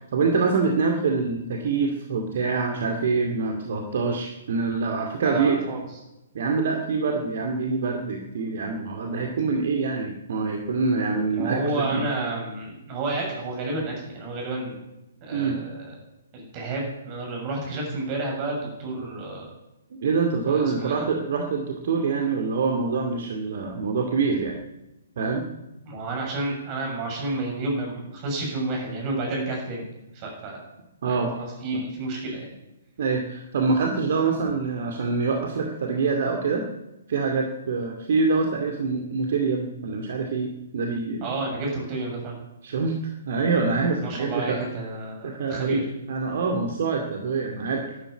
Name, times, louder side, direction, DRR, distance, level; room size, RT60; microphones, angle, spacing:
voice 1, 0.1-5.6 6.3-12.0 15.3-15.6 20.0-24.6 25.2-25.4 31.0-31.3 31.7-31.8 33.0-36.6 37.1-41.3 42.6-44.6 45.2-45.8 46.1-48.0, right 4 dB, 50° right, 3 dB, 2.3 m, -25 dB
voice 2, 5.2-5.8 11.3-14.8 15.2-15.9 16.3-19.4 20.5-21.1 25.9-30.6 31.1-32.5 41.2-42.4 44.0-45.9, right 2 dB, 25° right, -1 dB, 7.2 m, -30 dB
12.5 x 12.0 x 9.5 m, 0.97 s
figure-of-eight pair, 125°, 0 cm